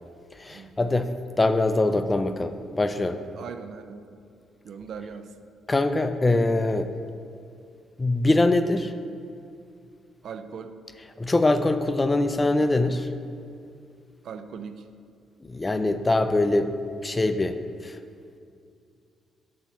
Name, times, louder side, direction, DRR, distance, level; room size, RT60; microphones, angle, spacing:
voice 1, 0.4-3.2 5.7-6.9 8.0-8.9 11.2-13.1 15.4-16.7 17.0-17.6 17.8-18.0, left 2 dB, 20° left, 10 dB, 0.3 m, -23 dB
voice 2, 3.3-4.0 4.6-5.3 10.2-10.7 14.2-14.8, right 6 dB, 65° right, 9 dB, 0.4 m, -39 dB
7.0 x 2.9 x 5.8 m, 2.4 s
cardioid pair, 90°, 0 cm